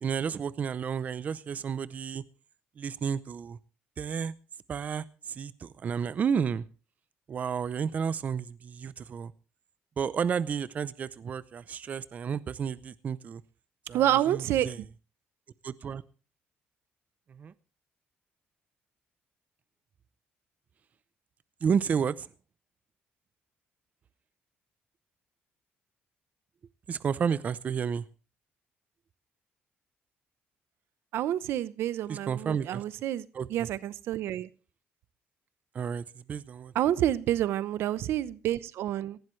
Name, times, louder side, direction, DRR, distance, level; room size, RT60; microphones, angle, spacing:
voice 1, 0.0-2.2 2.8-3.6 4.0-4.3 4.7-6.6 7.3-9.3 10.0-13.4 13.9-14.8 15.6-16.0 17.3-17.5 21.6-22.3 26.9-28.0 32.1-32.8 33.3-33.5 35.7-36.7, right 7 dB, 40° right, 17 dB, 0.6 m, -31 dB
voice 2, 13.9-14.8 31.1-34.5 36.7-39.2, right 12 dB, 80° right, 18 dB, 0.8 m, -28 dB
18.5 x 15.5 x 3.2 m, 0.35 s
cardioid pair, 140°, 4 cm